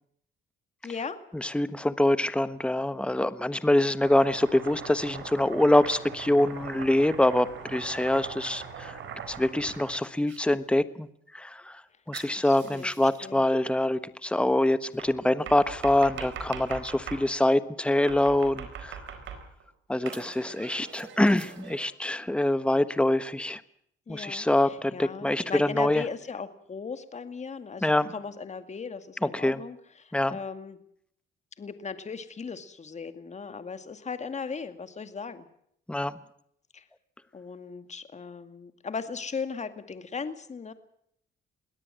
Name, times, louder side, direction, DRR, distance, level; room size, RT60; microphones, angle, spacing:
voice 1, 0.8-1.2 12.4-13.4 24.1-30.8 31.6-35.5 36.7-36.8 37.3-40.7, left 5 dB, 35° left, 10 dB, 2.2 m, -38 dB
voice 2, 1.3-9.0 9.3-11.1 11.3-11.8 12.1-19.0 19.9-23.6 24.1-26.0 27.8-28.1 29.2-29.6 30.1-30.4 35.9-36.1, left 1 dB, 5° left, 14 dB, 1.3 m, -25 dB
Domestic sounds home sounds, 4.0-10.4 12.1-13.2 15.0-17.3 18.1-19.6 20.1-21.8, right 7 dB, 75° right, 4.4 m, -41 dB
22.0 x 17.5 x 7.6 m, 0.70 s
cardioid pair, 90°, 20 cm